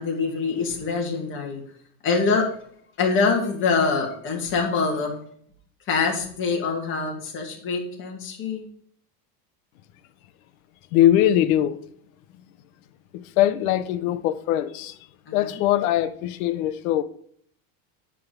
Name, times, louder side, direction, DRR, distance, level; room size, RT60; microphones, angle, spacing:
voice 1, 0.0-1.6 2.0-2.5 3.0-5.1 5.9-8.6 15.3-15.6, left 4 dB, 30° left, 2.1 m, -24 dB
voice 2, 10.9-11.8 13.1-14.9 15.3-17.0, left 12 dB, 75° left, 0.9 m, -21 dB
9.3 x 3.8 x 7.0 m
cardioid pair, 170°, 42 cm